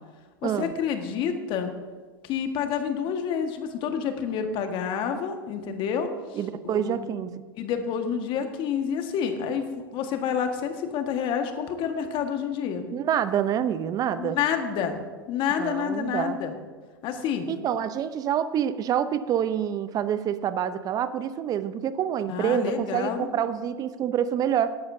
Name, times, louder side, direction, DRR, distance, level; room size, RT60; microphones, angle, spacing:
voice 1, 0.4-1.7 2.2-6.4 6.6-7.1 7.6-12.8 14.2-15.0 15.3-16.5 17.0-17.5 22.3-23.3, left 7 dB, 45° left, 6 dB, 1.5 m, -28 dB
voice 2, 6.3-7.4 12.9-14.4 15.6-16.4 17.5-24.8, right 9 dB, 30° right, 13 dB, 0.6 m, -27 dB
17.5 x 11.0 x 2.7 m, 1.4 s
hypercardioid pair, 95°, 12 cm